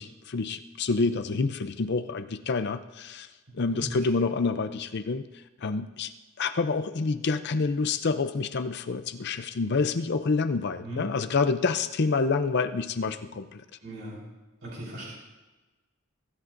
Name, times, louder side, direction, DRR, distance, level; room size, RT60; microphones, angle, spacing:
voice 1, 0.0-3.3 3.5-6.1 6.4-13.6, left 4 dB, 50° left, 10 dB, 0.5 m, -28 dB
voice 2, 13.8-14.2 14.6-15.1, right 1 dB, 75° right, -6 dB, 4.7 m, -38 dB
23.5 x 13.5 x 2.6 m, 1.2 s
head